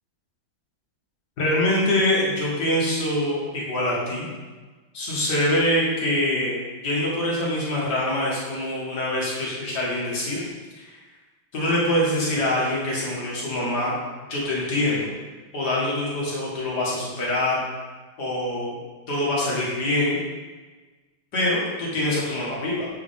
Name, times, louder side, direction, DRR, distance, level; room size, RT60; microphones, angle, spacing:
voice 1, 1.4-4.3 4.9-10.4 10.8-11.0 11.5-14.0 14.3-15.1 15.5-17.6 18.2-18.8 19.1-20.2 21.3-22.9, left 1 dB, 55° left, -5 dB, 2.1 m, -24 dB
8.0 x 4.7 x 3.6 m, 1.3 s
omnidirectional pair, 2.3 m